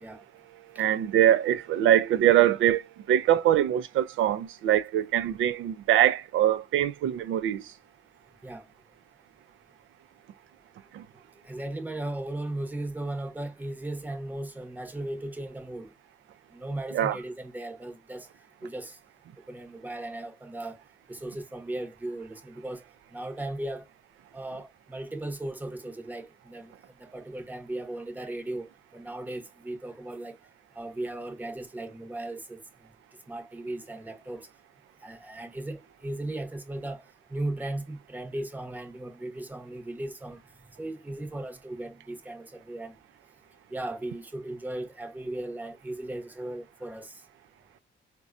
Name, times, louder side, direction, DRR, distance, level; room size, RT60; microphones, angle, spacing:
voice 1, 0.8-7.6 10.9-11.0 16.9-17.2, right 11 dB, 80° right, 0.5 m, -23 dB
voice 2, 11.4-15.9 16.5-18.3 18.6-19.0 19.5-20.8 21.1-22.8 23.1-23.9 24.3-26.7 27.0-30.4 30.7-32.6 33.3-34.5 35.0-37.0 37.3-40.4 40.8-43.0 43.7-47.2, right 1 dB, 10° right, 0.8 m, -37 dB
4.1 x 2.2 x 2.4 m
cardioid pair, 90°, 20 cm